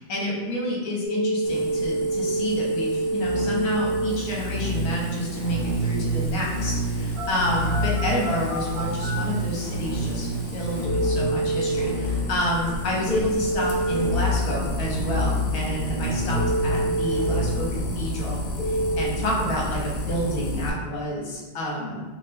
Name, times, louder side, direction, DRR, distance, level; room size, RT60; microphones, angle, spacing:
voice 1, 0.0-18.4 18.6-22.0, equal, 60° left, -3 dB, 1.2 m, -29 dB
Telephone, 1.0-11.8 13.1-14.1 16.3-17.4 18.6-19.0, right 2 dB, 60° right, 1.8 m, -28 dB
sound 1, 1.4-20.7, left 1 dB, 80° left, 0.6 m, -34 dB
sound 2, 3.2-18.0, equal, 15° left, 0.9 m, -29 dB
3.1 x 2.8 x 3.3 m, 1.2 s
omnidirectional pair, 1.9 m